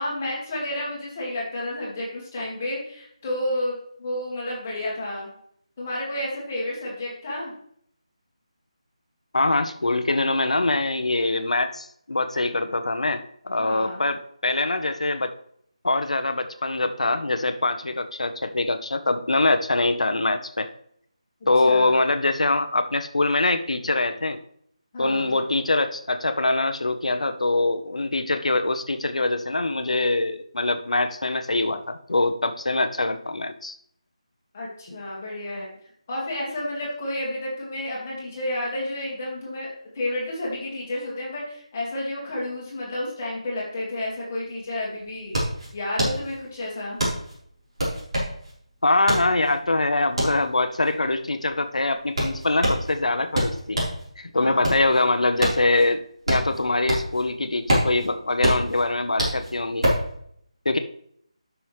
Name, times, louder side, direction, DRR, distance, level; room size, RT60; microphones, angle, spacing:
voice 1, 0.0-5.3 5.8-7.5 13.6-14.0 21.6-22.0 24.9-25.4 34.5-35.7 36.1-39.7 39.9-45.3 45.7-47.0 54.3-54.7, left 1 dB, 15° left, -5 dB, 1.8 m, -31 dB
voice 2, 9.3-15.3 15.8-20.7 21.5-24.4 25.0-33.7 48.8-53.8 54.2-56.0 56.3-59.9 60.6-60.8, left 2 dB, 90° left, 8 dB, 0.9 m, -23 dB
sound 1, 44.4-44.5 44.7-54.0 54.4-57.2 57.5-60.1, equal, 50° right, 4.0 m, -26 dB
12.5 x 6.1 x 3.2 m, 0.67 s
figure-of-eight pair, 180°, 3 cm